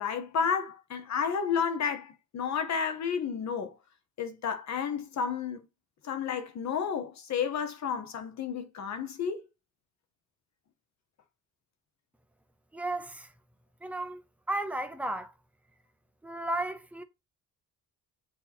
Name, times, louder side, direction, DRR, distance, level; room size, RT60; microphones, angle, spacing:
voice 1, 0.0-3.8 4.2-5.6 6.0-9.4, left 7 dB, 50° left, 1.0 m, -31 dB
voice 2, 12.7-13.3 13.8-14.2 14.5-15.3 16.2-17.0, right 1 dB, 5° right, 0.5 m, -34 dB
8.1 x 2.9 x 4.1 m
cardioid pair, 165°, 37 cm